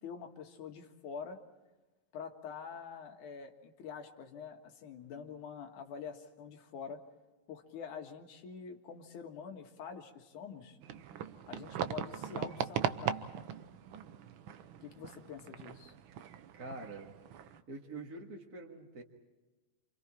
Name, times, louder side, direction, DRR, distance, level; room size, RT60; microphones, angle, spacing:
voice 1, 0.0-1.4 2.1-7.0 7.5-10.8 11.5-13.2 14.8-15.9, left 6 dB, 85° left, 4 dB, 3.2 m, -46 dB
sound 1, 10.8-17.6, right 8 dB, 85° right, 1.1 m, -39 dB
voice 2, 16.5-17.2 17.7-19.0, right 2 dB, 35° right, -1 dB, 2.1 m, -45 dB
28.5 x 28.5 x 4.4 m, 1.2 s
omnidirectional pair, 3.4 m